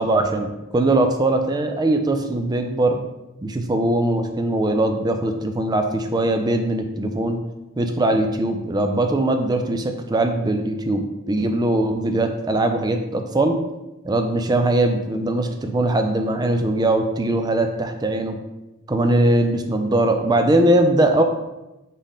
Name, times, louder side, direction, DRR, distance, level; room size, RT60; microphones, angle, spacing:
voice 1, 0.0-3.0 3.4-7.4 7.8-13.6 14.0-18.4 18.9-21.2, right 1 dB, 20° right, 5 dB, 0.3 m, -21 dB
4.1 x 3.6 x 3.7 m, 1.0 s
head